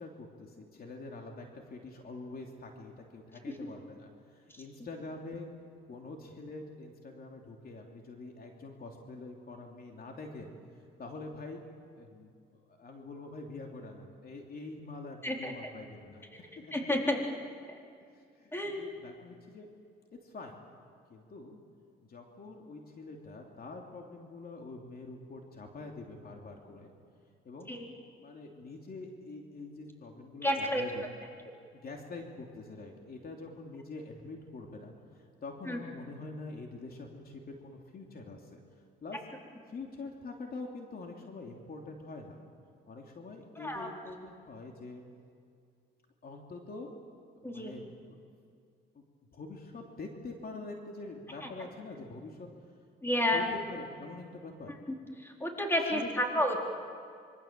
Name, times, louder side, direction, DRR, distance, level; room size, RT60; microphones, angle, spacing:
voice 1, 0.0-5.5 5.9-10.5 11.0-11.6 11.9-16.7 18.4-19.7 20.2-20.6 21.1-21.6 22.0-26.9 27.4-27.7 28.1-31.0 31.7-38.6 39.0-39.2 39.7-42.4 42.9-45.0 46.2-46.9 47.3-48.2 48.9-49.0 49.3-52.5 53.0-54.7 55.9-56.1 56.3-56.6, left 3 dB, 50° left, 2 dB, 3.1 m, -45 dB
voice 2, 15.2-15.7 16.3-16.4 16.7-17.2 17.7-17.8 18.5-18.8 27.7-27.8 30.4-30.8 31.5-31.6 35.7-35.8 43.6-43.9 47.4-47.7 53.0-53.5 55.2-56.6, left 1 dB, 10° left, 1 dB, 4.1 m, -31 dB
26.0 x 24.5 x 7.6 m, 2.3 s
cardioid pair, 90°, 20 cm